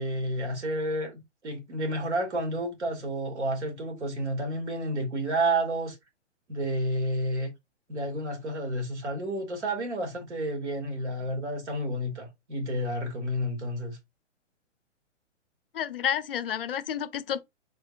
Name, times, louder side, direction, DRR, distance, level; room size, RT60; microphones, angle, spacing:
voice 1, 0.0-6.0 6.5-7.5 7.9-14.0, right 1 dB, 65° right, 2.1 m, -30 dB
voice 2, 15.7-17.4, left 9 dB, 50° left, 0.5 m, -30 dB
4.8 x 3.9 x 2.4 m
figure-of-eight pair, 125°, 37 cm